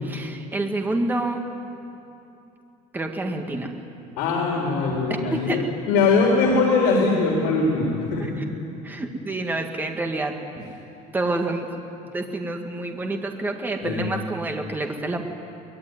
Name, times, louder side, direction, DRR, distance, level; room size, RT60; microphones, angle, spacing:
voice 1, 0.0-1.4 2.9-3.7 4.5-4.6 5.3-5.6 8.2-8.5 8.8-10.7 11.1-11.7 12.0-15.2, right 2 dB, 10° right, 3 dB, 2.0 m, -28 dB
voice 2, 4.2-8.2 13.8-14.0, left 3 dB, 80° left, -2 dB, 4.4 m, -21 dB
24.0 x 21.0 x 9.6 m, 2.7 s
cardioid pair, 165°, 16 cm